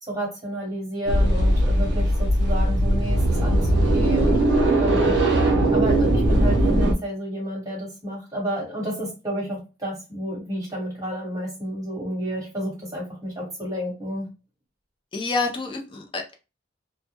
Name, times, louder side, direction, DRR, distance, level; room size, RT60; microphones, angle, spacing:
voice 1, 0.0-4.4 4.8-5.2 5.7-14.3, equal, 20° right, -3 dB, 1.1 m, -31 dB
sound 1, 1.1-6.9, right 1 dB, 70° right, 0.6 m, -19 dB
voice 2, 15.1-16.3, left 3 dB, 25° left, 2 dB, 0.5 m, -28 dB
2.2 x 2.1 x 2.8 m, 0.30 s
head